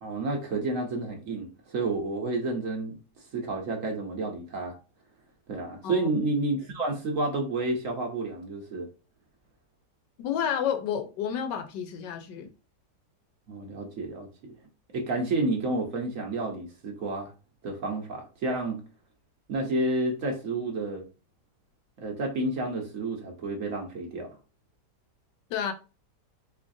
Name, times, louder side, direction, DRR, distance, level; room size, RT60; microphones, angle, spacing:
voice 1, 0.0-2.9 3.3-4.7 5.5-8.9 13.5-14.5 14.9-17.3 17.6-18.8 19.5-21.0 22.0-24.3, right 2 dB, 60° right, 1.1 m, -30 dB
voice 2, 10.2-12.5 25.5-25.7, left 8 dB, 90° left, 1.3 m, -30 dB
3.6 x 3.2 x 2.6 m
omnidirectional pair, 1.8 m